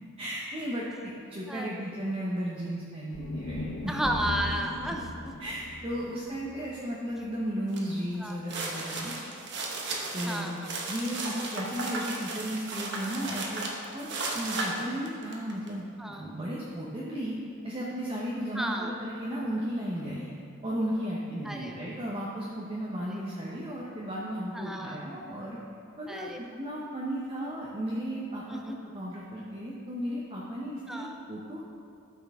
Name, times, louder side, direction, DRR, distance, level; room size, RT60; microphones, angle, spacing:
voice 1, 0.2-4.0 5.4-9.1 10.1-10.5 10.9-17.4 17.6-20.3 20.6-25.6 26.0-31.6, equal, 25° right, -5 dB, 0.9 m, -35 dB
voice 2, 1.5-1.9 3.9-5.1 7.1-7.2 8.2-8.4 10.3-10.7 16.0-16.3 18.5-18.9 21.4-21.8 23.1-23.2 24.5-25.0 26.1-26.4 28.5-28.8 30.9-31.2, equal, ahead, 2 dB, 0.5 m, -33 dB
sound 1, 3.1-7.4, left 1 dB, 65° left, 0.9 m, -38 dB
sound 2, 7.7-7.9 8.3-15.7, right 3 dB, 55° right, 1.1 m, -35 dB
12.0 x 6.3 x 3.6 m, 2.5 s
head